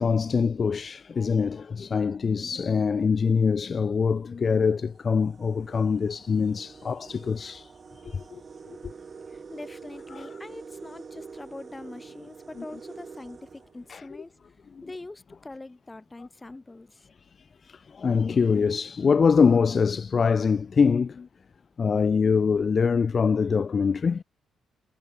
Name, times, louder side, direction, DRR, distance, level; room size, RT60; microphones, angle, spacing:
voice 1, 0.0-7.7 8.0-8.4 8.7-8.8 10.1-10.3 13.9-14.0 17.6-21.3 21.8-24.2, left 5 dB, 40° left, 1.9 m, -24 dB
sound 1, 3.0-3.3 4.1-4.2 4.6-14.4, right 5 dB, 40° right, 3.9 m, -46 dB
voice 2, 9.3-14.3 14.8-17.1, left 2 dB, 15° left, 5.0 m, -43 dB
cardioid pair, 90°, 0 cm